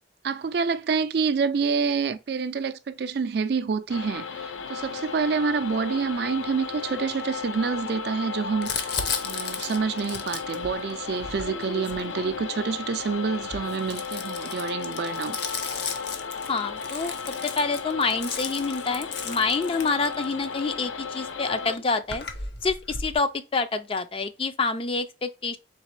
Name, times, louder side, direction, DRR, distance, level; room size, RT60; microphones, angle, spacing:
voice 1, 0.2-15.4, right 5 dB, 55° right, 0.4 m, -27 dB
sound 1, 3.9-21.8, left 5 dB, 90° left, 0.6 m, -35 dB
Crumpling crinkling, 8.6-12.7 13.3-20.4 21.3-21.4 21.6-23.1, left 5 dB, 55° left, 0.8 m, -35 dB
voice 2, 16.5-17.1 17.4-22.3 22.6-25.6, left 4 dB, 30° left, 0.4 m, -27 dB
4.0 x 3.7 x 3.2 m
head